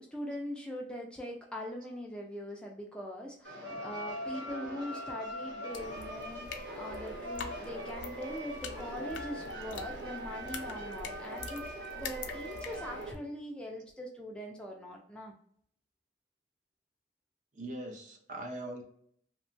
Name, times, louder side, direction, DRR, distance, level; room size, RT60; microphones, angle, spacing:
voice 1, 0.0-15.3, equal, 5° left, 0 dB, 0.3 m, -42 dB
sound 1, 3.4-13.1, equal, 80° right, 1.2 m, -41 dB
sound 2, 5.7-13.1, left 5 dB, 85° left, 0.4 m, -46 dB
voice 2, 17.5-18.8, right 1 dB, 45° right, 3 dB, 0.6 m, -41 dB
2.8 x 2.3 x 2.5 m, 0.66 s
head